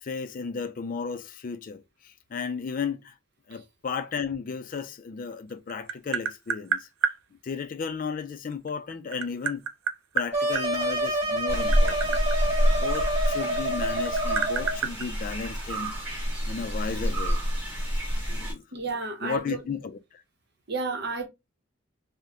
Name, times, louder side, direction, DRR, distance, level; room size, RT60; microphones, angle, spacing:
voice 1, 0.0-3.2 3.5-7.1 7.4-9.6 10.1-12.2 12.8-15.9 16.5-17.4 18.3-18.6 19.2-20.0, left 5 dB, 40° left, 0.3 m, -34 dB
Tap, 5.3-7.2 8.5-10.7 11.4-13.6 13.9-15.9, right 7 dB, 85° right, 0.4 m, -30 dB
sound 1, 10.3-14.8, right 1 dB, 30° right, 1.4 m, -28 dB
sound 2, 11.5-18.5, equal, 10° right, 1.1 m, -27 dB
voice 2, 18.7-19.6 20.7-21.3, right 3 dB, 55° right, 0.8 m, -31 dB
3.6 x 2.1 x 2.7 m
head